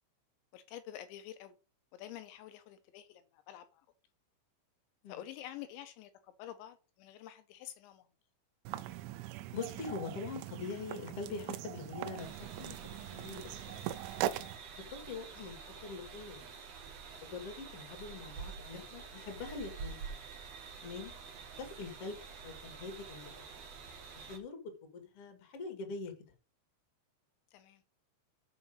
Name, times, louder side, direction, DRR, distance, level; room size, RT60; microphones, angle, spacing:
voice 1, 0.5-1.6 1.9-3.9 5.1-8.1 15.3-15.5 21.5-21.7 27.5-27.8, left 12 dB, 80° left, 10 dB, 2.9 m, -49 dB
sound 1, 8.7-14.6, right 13 dB, 85° right, 3.0 m, -41 dB
voice 2, 9.5-12.8 13.1-13.6 14.7-15.6 15.8-16.5 17.3-20.2 20.8-21.1 21.6-22.2 22.4-23.4 24.1-24.6 24.9-26.1, left 4 dB, 40° left, 4 dB, 2.4 m, -43 dB
sound 2, 12.2-24.4, right 5 dB, 65° right, 1.6 m, -48 dB
7.1 x 5.6 x 6.4 m, 0.33 s
omnidirectional pair, 5.6 m